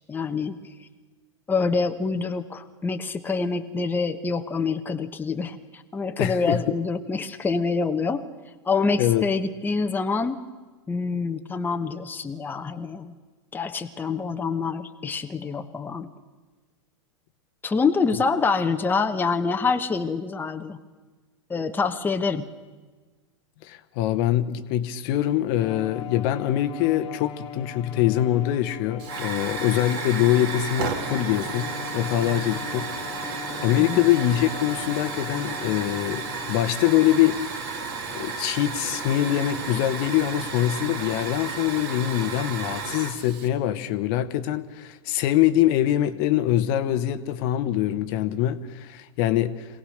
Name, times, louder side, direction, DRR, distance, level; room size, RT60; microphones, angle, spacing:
voice 1, 0.1-0.6 1.5-8.2 8.6-10.4 10.9-13.2 13.5-16.1 17.6-20.8 21.5-22.5 33.8-34.0, left 4 dB, 10° left, 1.0 m, -26 dB
voice 2, 6.2-6.6 9.0-9.3 18.1-18.2 23.6-32.9 33.6-37.5 38.1-49.8, left 12 dB, 50° left, 1.1 m, -24 dB
Bowed string instrument, 25.6-36.8, left 6 dB, 30° left, 1.7 m, -39 dB
Hiss / Fire, 29.0-43.5, right 4 dB, 55° right, 2.8 m, -33 dB
23.0 x 17.5 x 6.5 m
hypercardioid pair, 110°, 15 cm